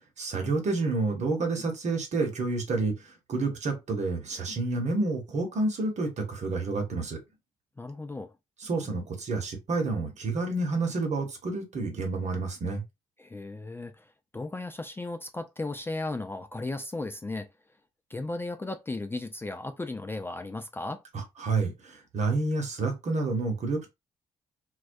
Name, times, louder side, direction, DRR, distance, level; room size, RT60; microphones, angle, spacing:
voice 1, 0.2-7.2 8.6-12.8 21.4-23.9, right 3 dB, 55° right, 1.0 m, -29 dB
voice 2, 7.8-8.3 13.2-17.5 18.1-21.0, left 2 dB, 15° left, 0.3 m, -35 dB
2.2 x 2.2 x 2.6 m
supercardioid pair, 55°, 14 cm